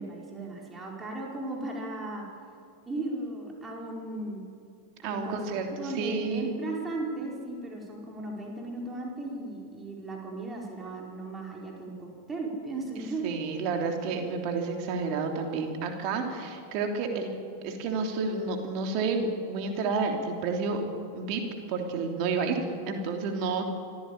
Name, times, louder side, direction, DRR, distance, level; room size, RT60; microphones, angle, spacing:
voice 1, 0.0-2.2 2.9-4.5 5.0-5.4 5.7-13.3, right 2 dB, 15° right, -1 dB, 5.0 m, -36 dB
voice 2, 5.0-6.5 13.2-17.3 17.6-20.8 21.1-21.4 21.7-23.6, right 4 dB, 45° right, 3 dB, 3.2 m, -30 dB
24.5 x 15.5 x 8.8 m, 2.3 s
figure-of-eight pair, 90°, 0 cm